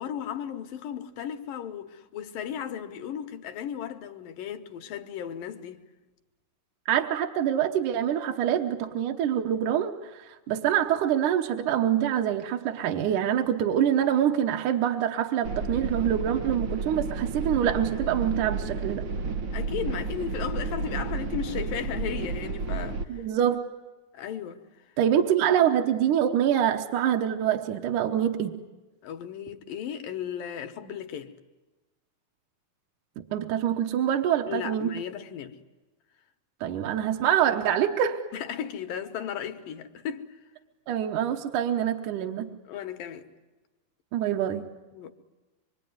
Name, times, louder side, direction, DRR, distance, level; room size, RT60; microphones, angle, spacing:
voice 1, 0.0-5.8 19.5-23.3 24.1-24.6 29.0-31.3 34.5-35.6 38.3-40.4 42.7-43.3 44.9-45.1, left 9 dB, 70° left, 2.8 m, -35 dB
voice 2, 6.9-19.0 23.1-23.7 25.0-28.6 33.2-34.9 36.6-38.2 40.9-42.5 44.1-44.6, right 10 dB, 70° right, 2.3 m, -25 dB
sound 1, 15.4-23.0, right 4 dB, 90° right, 1.1 m, -31 dB
25.5 x 24.0 x 9.5 m
omnidirectional pair, 4.3 m